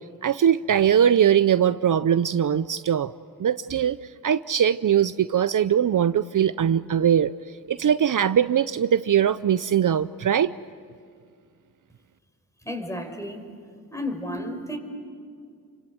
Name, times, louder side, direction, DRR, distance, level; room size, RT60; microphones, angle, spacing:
voice 1, 0.2-3.1 3.4-4.0 4.2-7.3 7.7-10.5, right 9 dB, 60° right, 14 dB, 0.6 m, -21 dB
voice 2, 12.6-13.4 13.9-14.8, left 1 dB, 10° left, 4 dB, 5.1 m, -32 dB
29.5 x 25.0 x 7.8 m, 2.2 s
cardioid pair, 75°, 36 cm